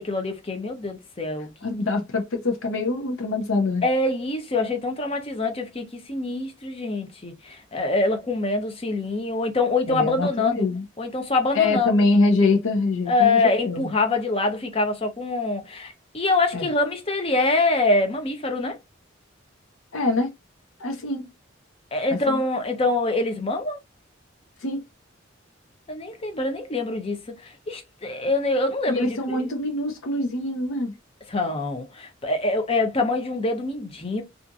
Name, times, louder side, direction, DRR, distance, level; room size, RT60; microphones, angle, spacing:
voice 1, 0.0-1.5 3.8-10.7 11.0-12.0 13.1-18.8 21.9-23.8 25.9-29.0 31.3-34.2, left 2 dB, 30° left, 0.6 m, -25 dB
voice 2, 1.6-3.9 9.9-10.8 11.5-13.9 16.5-16.7 19.9-20.3 20.8-21.3 22.1-22.4 24.6-24.8 28.9-30.9, left 3 dB, 85° left, 0.6 m, -24 dB
2.7 x 2.5 x 2.3 m
head